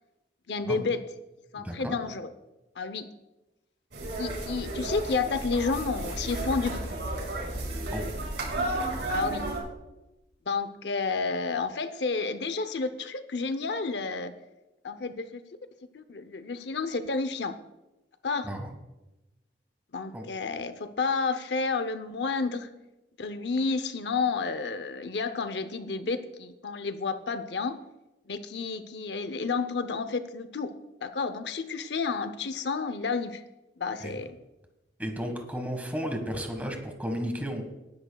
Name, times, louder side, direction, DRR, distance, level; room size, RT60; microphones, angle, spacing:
voice 1, 0.5-1.0 1.5-2.3 2.8-3.1 4.2-7.0 9.1-9.5 10.5-14.3 14.8-15.4 15.9-17.6 18.2-18.5 19.9-22.7 23.2-27.8 28.3-30.7 31.0-33.4 33.8-34.4, left 4 dB, 75° left, 11 dB, 0.7 m, -31 dB
voice 2, 1.6-1.9 7.9-8.1 18.4-18.7 20.1-20.2 34.0-34.2 35.0-37.6, equal, 10° right, 4 dB, 1.5 m, -33 dB
sound 1, 3.9-9.6, right 1 dB, 75° right, 4.7 m, -32 dB
19.0 x 10.5 x 2.3 m, 0.99 s
head